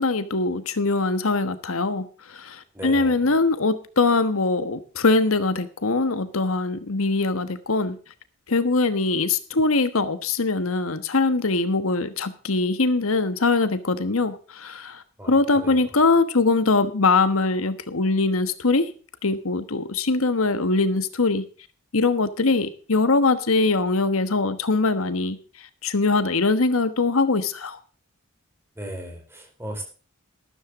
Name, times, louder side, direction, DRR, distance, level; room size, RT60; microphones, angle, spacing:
voice 1, 0.0-2.1 2.3-8.0 8.5-18.9 19.2-21.4 21.9-25.4 25.8-27.8, left 3 dB, 75° left, 11 dB, 1.3 m, -22 dB
voice 2, 2.7-3.2 15.2-15.8 28.8-29.8, right 1 dB, 10° right, 3 dB, 4.4 m, -36 dB
13.5 x 13.0 x 3.7 m, 0.39 s
head